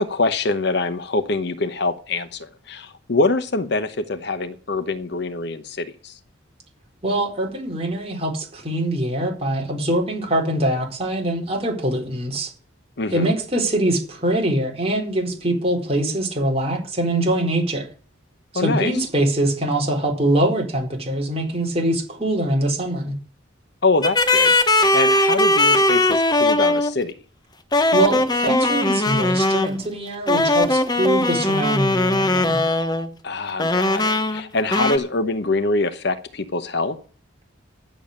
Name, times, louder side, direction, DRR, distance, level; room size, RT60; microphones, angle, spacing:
voice 1, 0.0-6.1 13.0-13.3 18.5-18.9 23.8-27.1 33.2-37.0, left 3 dB, 55° left, 0.9 m, -24 dB
voice 2, 7.0-12.5 13.1-17.9 18.5-23.1 27.9-32.6, right 1 dB, 30° right, 4.2 m, -23 dB
sound 1, 24.0-27.0 27.7-29.8 30.3-33.1 33.6-34.4 34.7-35.0, left 2 dB, 20° left, 1.0 m, -19 dB
10.5 x 7.1 x 8.5 m
head